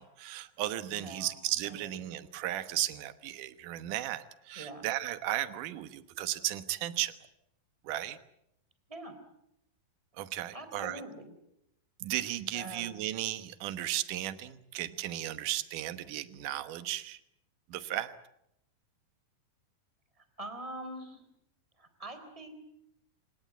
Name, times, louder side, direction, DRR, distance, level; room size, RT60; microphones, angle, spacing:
voice 1, 0.0-7.1 7.8-8.2 10.1-11.0 12.0-17.2 17.7-18.1, right 13 dB, 70° right, 12 dB, 2.6 m, -35 dB
voice 2, 0.9-1.4 1.6-1.9 4.6-4.9 8.9-9.2 10.5-11.3 12.5-13.0 20.4-21.2 21.8-22.5, right 1 dB, 10° right, 9 dB, 3.4 m, -43 dB
28.0 x 18.0 x 9.2 m, 0.79 s
omnidirectional pair, 4.0 m